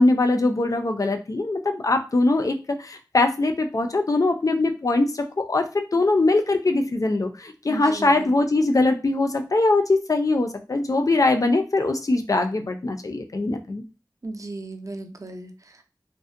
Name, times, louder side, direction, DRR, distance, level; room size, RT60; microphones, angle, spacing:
voice 1, 0.0-13.8, left 2 dB, 50° left, 5 dB, 0.4 m, -22 dB
voice 2, 7.7-8.3 14.2-15.8, right 2 dB, 45° right, 6 dB, 0.4 m, -36 dB
2.6 x 2.0 x 2.4 m, 0.32 s
wide cardioid pair, 50°, 8 cm